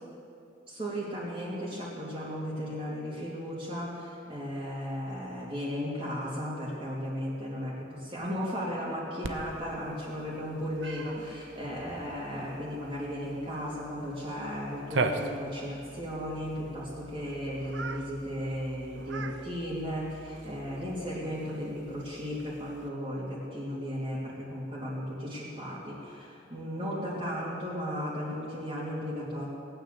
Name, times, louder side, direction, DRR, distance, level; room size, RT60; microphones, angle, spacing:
voice 1, 0.7-29.5, equal, 25° right, -8 dB, 2.8 m, -35 dB
Cat, 9.2-22.9, right 3 dB, 75° right, 0.9 m, -40 dB
18.5 x 9.2 x 7.8 m, 2.5 s
head